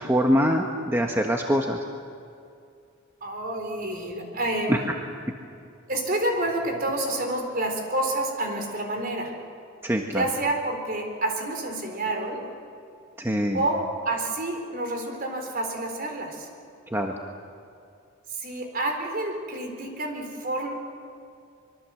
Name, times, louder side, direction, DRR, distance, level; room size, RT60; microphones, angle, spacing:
voice 1, 0.0-1.8 4.7-4.8 9.8-10.2 13.2-13.6 16.9-17.1, equal, 10° right, 2 dB, 1.3 m, -23 dB
voice 2, 3.2-4.8 5.9-9.3 10.1-12.5 13.5-16.5 18.4-20.7, right 1 dB, 45° right, 3 dB, 4.1 m, -28 dB
25.0 x 23.5 x 7.8 m, 2.5 s
head